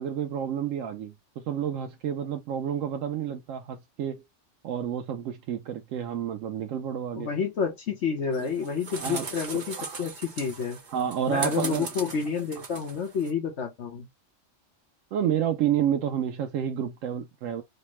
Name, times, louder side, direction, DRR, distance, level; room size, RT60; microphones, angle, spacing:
voice 1, 0.0-4.2 4.6-7.3 9.0-9.3 9.8-10.1 10.9-11.9 15.1-17.6, right 9 dB, 85° right, 0.9 m, -30 dB
voice 2, 7.2-10.8 11.3-14.1, left 6 dB, 65° left, 1.2 m, -29 dB
sound 1, 8.3-13.3, right 4 dB, 45° right, 0.9 m, -39 dB
4.2 x 2.1 x 3.0 m
omnidirectional pair, 1.3 m